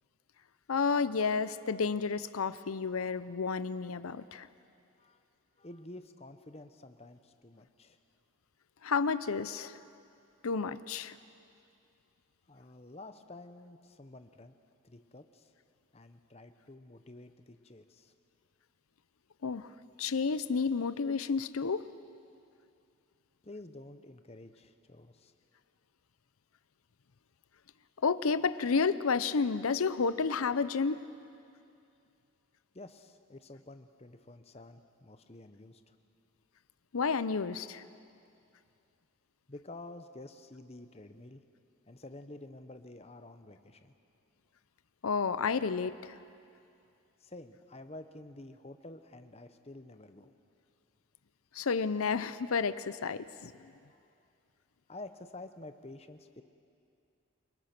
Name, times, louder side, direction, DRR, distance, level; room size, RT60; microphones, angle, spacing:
voice 1, 0.7-4.5 8.8-9.7 10.4-11.1 19.4-19.7 20.0-21.8 28.0-31.0 36.9-37.8 45.0-46.2 51.5-53.5, left 5 dB, 85° left, 15 dB, 0.7 m, -31 dB
voice 2, 5.6-8.0 12.5-14.5 14.8-15.5 15.9-18.1 23.4-25.3 32.7-35.9 39.5-41.4 41.9-43.9 47.2-50.3 53.9-54.0 54.9-56.4, left 2 dB, 30° left, 9 dB, 0.9 m, -50 dB
29.0 x 19.5 x 6.0 m, 2.5 s
head